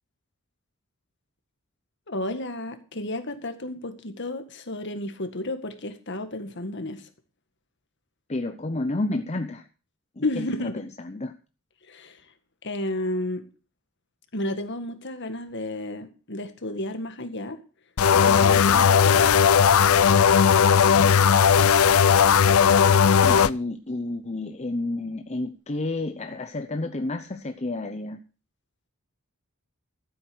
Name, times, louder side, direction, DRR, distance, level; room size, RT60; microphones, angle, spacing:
voice 1, 2.1-7.0 10.2-10.7 11.9-12.2 12.6-13.4 14.3-17.6 18.2-19.4, left 1 dB, 55° left, 8 dB, 1.9 m, -32 dB
voice 2, 8.3-9.6 10.2-10.3 10.6-11.3 20.7-21.2 23.2-28.2, left 2 dB, 30° left, 7 dB, 0.7 m, -30 dB
sound 1, 18.0-23.5, left 7 dB, 80° left, 0.5 m, -17 dB
14.0 x 8.1 x 6.3 m, 0.36 s
head